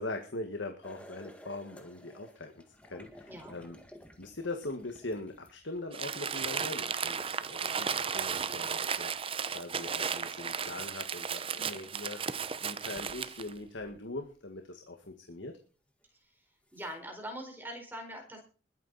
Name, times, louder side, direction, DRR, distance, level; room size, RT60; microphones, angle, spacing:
voice 1, 0.0-3.8 4.2-12.2 12.6-15.6, left 2 dB, 80° left, 5 dB, 1.8 m, -41 dB
sound 1, 0.8-6.1 8.1-8.2 11.1-11.2 11.9-12.2 12.9-14.6 15.0-15.1 16.0-16.1 16.6-16.9, equal, 5° left, 1.9 m, -55 dB
Crumpling crinkling, 5.9-13.5, right 6 dB, 30° right, 0.7 m, -34 dB
voice 2, 11.6-11.9 16.7-18.4, equal, 10° right, 3 dB, 4.7 m, -43 dB
21.0 x 9.3 x 4.2 m, 0.38 s
head